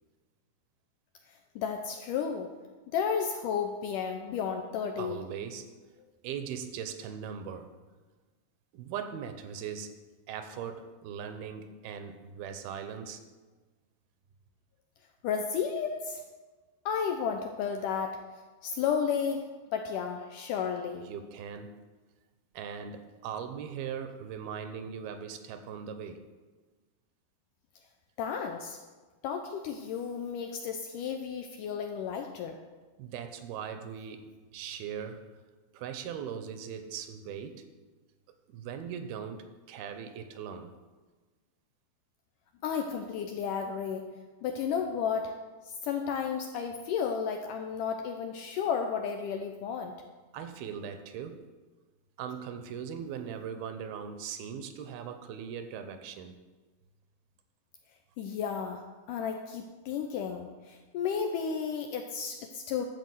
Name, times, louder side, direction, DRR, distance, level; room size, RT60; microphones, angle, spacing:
voice 1, 1.6-2.5 2.9-5.2 15.2-16.2 16.9-18.2 18.6-21.1 28.2-28.8 29.2-32.6 42.6-44.1 44.4-45.3 45.6-49.9 58.2-58.8 59.1-62.8, left 7 dB, 85° left, 5 dB, 1.9 m, -33 dB
voice 2, 5.0-5.7 6.2-7.7 8.7-9.9 10.3-13.2 21.0-21.7 22.5-26.2 33.0-34.2 34.5-35.3 35.7-37.6 38.5-40.7 50.3-51.4 52.2-56.3 61.4-61.6, right 7 dB, 80° right, 8 dB, 2.7 m, -39 dB
12.5 x 4.7 x 7.9 m, 1.3 s
omnidirectional pair, 4.3 m